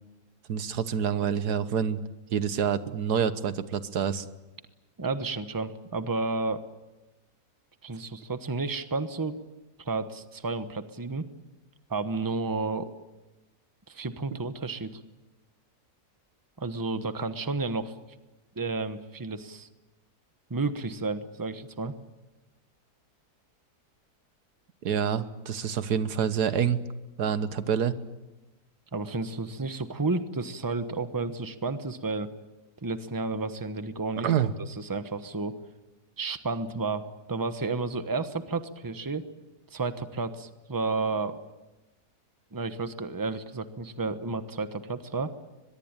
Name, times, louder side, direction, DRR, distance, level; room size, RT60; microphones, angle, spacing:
voice 1, 0.5-2.0 2.3-4.2 24.8-26.8 27.2-28.0 34.2-34.5, right 8 dB, 90° right, 12 dB, 1.7 m, -27 dB
voice 2, 5.0-6.6 7.8-9.4 9.8-11.3 11.9-12.9 13.9-14.9 16.6-17.9 18.6-19.7 20.5-22.0 28.9-32.3 32.8-34.3 34.8-35.6 36.2-39.3 39.7-41.4 42.5-45.3, right 3 dB, 15° right, 10 dB, 1.0 m, -31 dB
23.0 x 22.0 x 8.9 m, 1.1 s
omnidirectional pair, 1.7 m